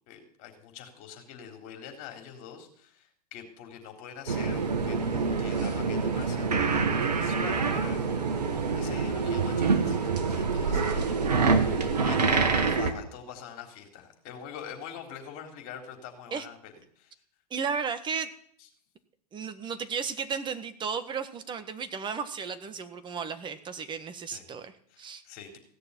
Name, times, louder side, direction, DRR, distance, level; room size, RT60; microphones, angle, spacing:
voice 1, 0.1-11.0 11.3-11.7 12.0-17.1 24.3-24.5 24.9-25.6, left 8 dB, 45° left, 3 dB, 3.9 m, -45 dB
sound 1, 4.3-12.9, right 4 dB, 75° right, 1.8 m, -26 dB
voice 2, 17.5-18.3 19.3-25.2, right 6 dB, 20° right, 10 dB, 1.5 m, -34 dB
16.5 x 6.8 x 9.8 m, 0.62 s
figure-of-eight pair, 100°, 21 cm